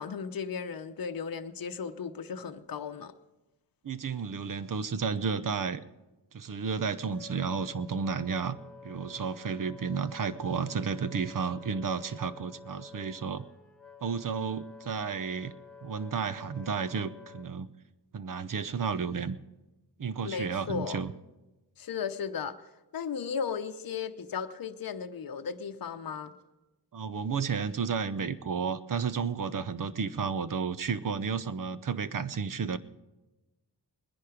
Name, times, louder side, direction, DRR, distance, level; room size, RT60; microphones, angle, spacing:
voice 1, 0.0-3.1 20.2-21.0 21.8-22.6 22.9-26.3, left 6 dB, 55° left, 8 dB, 0.8 m, -35 dB
voice 2, 3.8-5.8 6.3-8.6 8.8-13.5 14.0-15.5 15.8-17.7 18.1-19.4 20.0-21.1 26.9-32.8, right 6 dB, 50° right, 14 dB, 0.7 m, -32 dB
Wind instrument woodwind instrument, 6.6-17.5, left 4 dB, ahead, 1.3 m, -50 dB
20.0 x 10.5 x 5.0 m, 1.1 s
wide cardioid pair, 80°, 42 cm